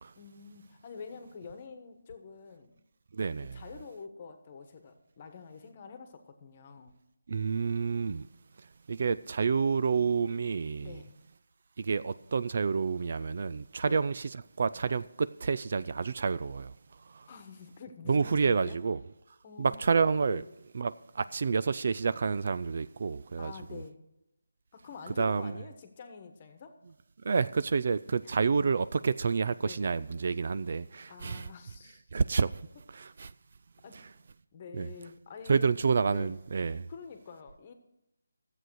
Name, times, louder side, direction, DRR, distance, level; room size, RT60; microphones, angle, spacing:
voice 1, 0.2-2.8 3.5-6.9 10.8-11.1 13.9-14.1 17.3-18.8 19.4-19.9 20.3-20.4 23.4-24.0 24.7-26.7 28.2-28.3 29.6-29.8 31.1-32.0 33.8-34.0 34.5-35.7 36.1-36.3 36.9-37.7, left 5 dB, 30° left, 1.3 m, -47 dB
voice 2, 3.1-3.6 7.3-8.3 8.6-11.0 11.8-17.3 18.1-19.0 19.6-20.4 20.7-23.8 25.2-25.6 27.2-31.5 32.1-32.6 32.9-33.3 33.9-34.1 34.7-34.9 35.5-36.9, right 5 dB, 45° right, 0.3 m, -29 dB
13.0 x 7.9 x 6.4 m
figure-of-eight pair, 165°, 0 cm